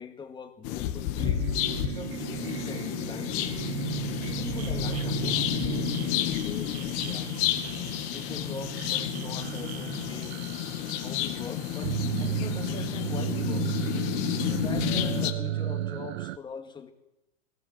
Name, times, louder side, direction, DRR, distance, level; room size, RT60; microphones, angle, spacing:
voice 1, 0.0-3.6 4.2-7.3 8.1-10.4 11.0-13.7 14.5-16.9, left 6 dB, 15° left, 2.0 m, -42 dB
sound 1, 0.6-15.3, left 13 dB, 40° left, 2.1 m, -31 dB
sound 2, 1.2-16.4, right 13 dB, 60° right, 0.8 m, -34 dB
21.0 x 18.0 x 7.5 m
supercardioid pair, 150°, 36 cm